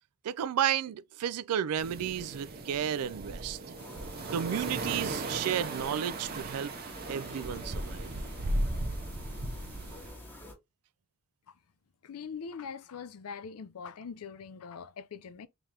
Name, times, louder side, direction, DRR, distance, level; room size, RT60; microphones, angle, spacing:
voice 1, 0.2-3.6 4.3-6.7 7.1-8.1, right 9 dB, 80° right, 0.3 m, -32 dB
sound 1, 1.8-10.1, right 2 dB, 45° right, 0.7 m, -36 dB
sound 2, 3.8-10.5, left 1 dB, 10° left, 0.9 m, -48 dB
voice 2, 12.0-15.5, left 6 dB, 70° left, 0.5 m, -42 dB
3.2 x 2.9 x 3.6 m
head